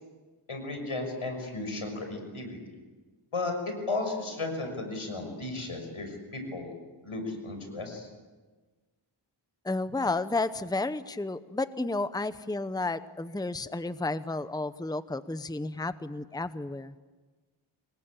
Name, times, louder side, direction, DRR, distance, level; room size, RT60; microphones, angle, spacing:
voice 1, 0.5-2.6 3.3-6.7 7.0-8.1, left 2 dB, 85° left, 5 dB, 6.3 m, -34 dB
voice 2, 9.6-16.9, left 2 dB, 10° left, 13 dB, 0.8 m, -32 dB
27.0 x 22.5 x 8.8 m, 1.3 s
wide cardioid pair, 65°, 49 cm